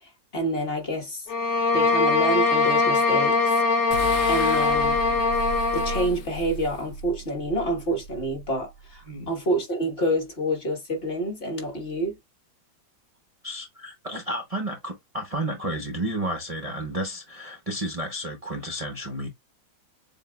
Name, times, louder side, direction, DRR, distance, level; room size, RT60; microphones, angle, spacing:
voice 1, 0.0-1.3 1.7-3.6 4.3-5.0 5.7-12.2, equal, 35° left, 1.4 m, -28 dB
sound 1, 1.3-6.1, left 3 dB, 70° left, 1.4 m, -22 dB
sound 2, 3.9-9.3, equal, 85° left, 0.6 m, -35 dB
voice 2, 13.4-19.3, right 1 dB, 60° right, 0.3 m, -31 dB
7.3 x 2.7 x 2.3 m
omnidirectional pair, 2.1 m